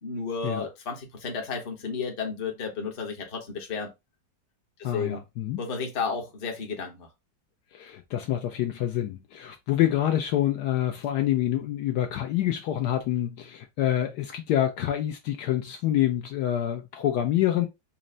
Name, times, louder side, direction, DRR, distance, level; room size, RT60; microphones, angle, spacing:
voice 1, 0.0-3.9 4.8-5.2 5.6-7.1, left 5 dB, 40° left, 0.9 m, -32 dB
voice 2, 4.8-5.6 7.7-17.7, left 12 dB, 75° left, 1.1 m, -27 dB
4.3 x 2.1 x 3.7 m
omnidirectional pair, 2.0 m